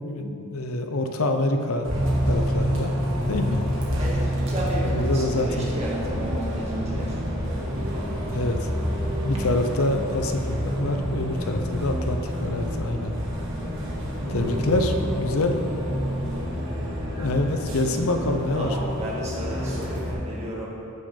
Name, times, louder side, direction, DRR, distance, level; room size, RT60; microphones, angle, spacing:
voice 1, 0.0-1.9 2.3-2.9 3.3-3.6 4.8-5.7 8.3-8.7 9.2-13.1 14.3-15.6 17.2-18.7, left 2 dB, 80° left, 5 dB, 0.8 m, -26 dB
Bus, 1.8-20.1, equal, 60° right, 1.8 m, -28 dB
voice 2, 4.0-7.2 18.5-20.7, equal, 30° right, -6 dB, 2.0 m, -33 dB
14.0 x 6.4 x 3.9 m, 3.0 s
head